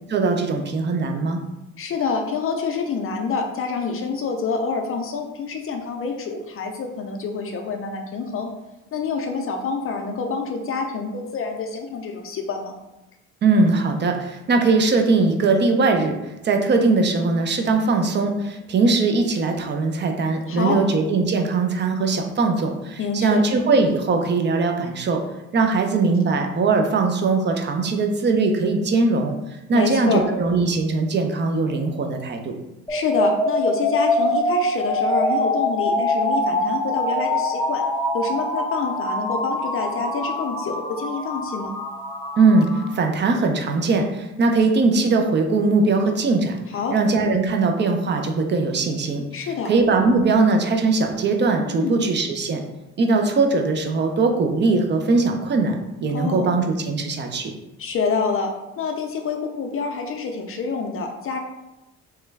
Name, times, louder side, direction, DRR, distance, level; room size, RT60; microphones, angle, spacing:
voice 1, 0.1-1.4 13.4-16.2 16.4-25.2 25.5-29.3 29.7-32.6 42.4-46.6 46.9-52.6 53.0-55.8 56.0-57.5, right 3 dB, 35° right, 4 dB, 0.5 m, -20 dB
voice 2, 1.8-8.5 8.9-12.7 20.5-20.8 23.0-23.4 29.7-30.2 32.9-37.8 38.1-41.7 46.7-46.9 49.3-49.7 51.7-52.0 56.1-56.6 57.8-61.4, left 4 dB, 45° left, 3 dB, 0.5 m, -27 dB
sound 1, 32.9-42.9, left 1 dB, 10° left, 0.7 m, -24 dB
3.1 x 2.2 x 3.3 m, 0.96 s
supercardioid pair, 70°, 32 cm